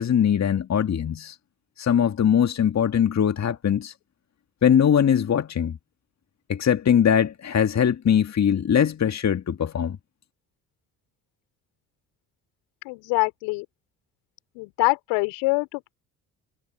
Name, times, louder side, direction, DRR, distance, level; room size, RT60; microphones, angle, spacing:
voice 1, 0.0-1.4 1.8-3.9 4.6-5.8 6.5-10.0, left 8 dB, 40° left, 1.7 m, -21 dB
voice 2, 12.8-13.6 14.5-15.9, left 27 dB, 70° left, 3.2 m, -25 dB
hypercardioid pair, 50°, 44 cm